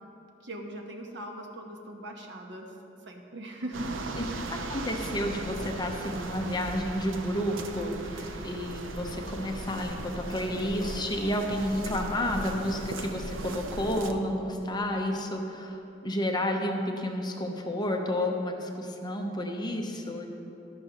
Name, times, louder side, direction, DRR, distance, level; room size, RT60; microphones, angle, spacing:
voice 1, 0.4-2.7 3.1-3.9 4.3-4.6, right 1 dB, 65° right, 2 dB, 1.1 m, -40 dB
sound 1, 3.7-14.1, right 2 dB, 85° right, 0.7 m, -38 dB
voice 2, 4.5-20.3, left 1 dB, 20° left, 2 dB, 0.8 m, -31 dB
12.5 x 11.5 x 3.0 m, 2.9 s
head